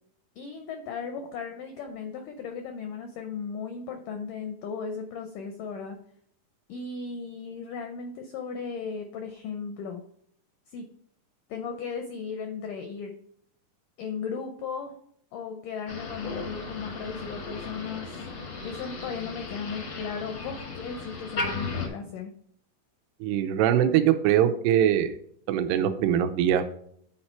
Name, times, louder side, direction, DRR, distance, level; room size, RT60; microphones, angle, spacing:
voice 1, 0.4-6.0 6.7-10.0 10.7-10.9 11.5-13.2 14.0-15.0 15.3-18.2 18.6-22.3, left 5 dB, 85° left, 5 dB, 1.8 m, -36 dB
Motor vehicle (road), 15.9-21.9, left 3 dB, 65° left, 1.1 m, -36 dB
voice 2, 23.2-25.2 25.5-26.7, right 10 dB, 85° right, 8 dB, 2.7 m, -22 dB
9.4 x 4.4 x 4.5 m, 0.67 s
omnidirectional pair, 4.7 m